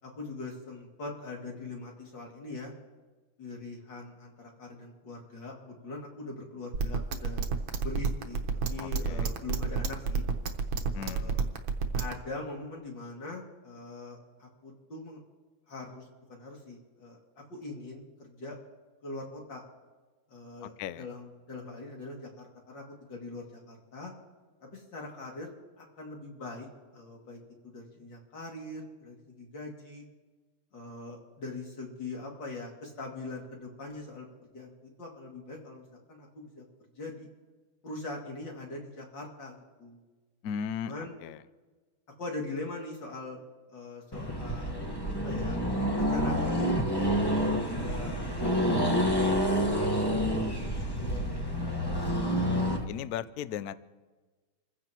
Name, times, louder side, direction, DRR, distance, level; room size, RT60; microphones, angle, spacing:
voice 1, 0.0-2.7 3.4-7.4 7.8-8.4 8.7-10.2 10.9-11.4 11.9-15.2 15.7-18.6 19.0-19.6 20.3-22.8 23.1-24.1 24.6-27.4 27.6-30.1 30.7-34.3 34.5-36.6 36.9-37.3 37.8-40.0 40.8-41.2 42.2-43.4 43.7-44.9 45.2-45.6 45.9-46.7 47.1-51.8, left 2 dB, 55° left, -1 dB, 3.2 m, -42 dB
sound 1, 6.7-12.1, right 5 dB, 70° right, 1.8 m, -29 dB
voice 2, 8.8-9.3 10.9-11.4 20.6-21.1 40.4-40.9 41.2-41.4 52.9-53.7, left 8 dB, 85° left, 14 dB, 0.8 m, -37 dB
Accelerating revving vroom, 44.1-52.8, equal, 15° left, 1.1 m, -28 dB
28.5 x 15.5 x 3.0 m, 1.3 s
omnidirectional pair, 2.4 m